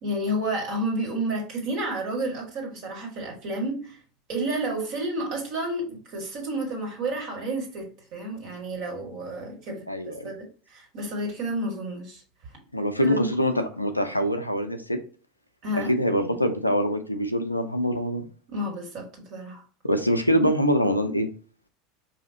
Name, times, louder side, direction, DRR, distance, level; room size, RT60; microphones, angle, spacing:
voice 1, 0.0-4.0 4.3-12.2 13.0-13.3 13.5-13.7 15.6-15.9 18.5-19.6, right 1 dB, 50° right, 1.8 m, -31 dB
voice 2, 9.9-10.3 12.7-15.0 15.7-18.2 19.8-21.3, equal, 90° left, 0.5 m, -24 dB
4.8 x 2.8 x 2.8 m
figure-of-eight pair, 80°, 0 cm